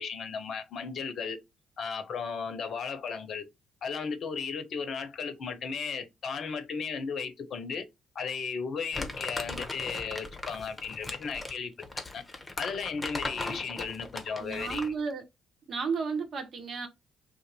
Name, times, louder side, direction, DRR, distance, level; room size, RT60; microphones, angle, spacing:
voice 1, 0.0-1.4 1.8-3.5 3.8-7.9 8.1-11.7 12.1-12.2 12.6-14.9, left 5 dB, 55° left, 0.6 m, -35 dB
Crumpling crinkling, 8.9-15.0, left 2 dB, 20° left, 0.8 m, -38 dB
voice 2, 14.4-15.2 15.7-16.9, right 5 dB, 55° right, 0.7 m, -33 dB
2.5 x 2.5 x 4.0 m
hypercardioid pair, 45°, 0 cm